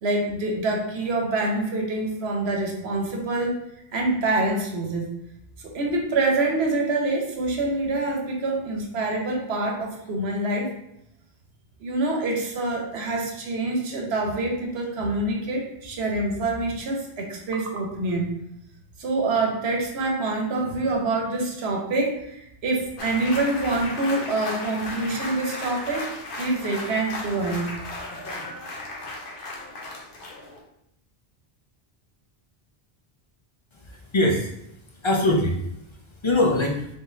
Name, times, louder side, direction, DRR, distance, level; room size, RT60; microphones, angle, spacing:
voice 1, 0.0-3.6 3.9-5.0 5.6-10.7 11.8-18.3 19.0-26.1 26.4-27.7, right 2 dB, 90° right, 0 dB, 1.1 m, -26 dB
sound 1, 23.0-30.6, left 2 dB, 60° left, 0.9 m, -35 dB
voice 2, 33.7-34.5 35.0-35.6 36.2-36.9, left 1 dB, 40° left, 0 dB, 0.5 m, -22 dB
3.8 x 3.4 x 2.6 m, 0.79 s
omnidirectional pair, 1.0 m